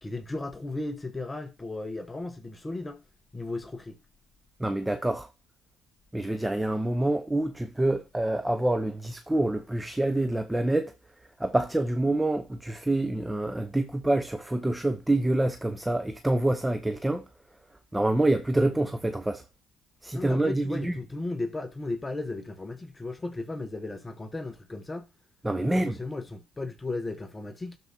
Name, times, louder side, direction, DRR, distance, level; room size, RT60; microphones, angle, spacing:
voice 1, 0.0-3.0 3.3-4.0 20.1-25.1 25.6-27.8, left 2 dB, 20° left, 1.0 m, -35 dB
voice 2, 4.6-5.3 6.1-10.9 11.4-17.3 17.9-19.4 20.0-21.0 25.4-26.0, right 1 dB, 10° right, 0.8 m, -26 dB
12.0 x 4.7 x 2.8 m
supercardioid pair, 65°, 0 cm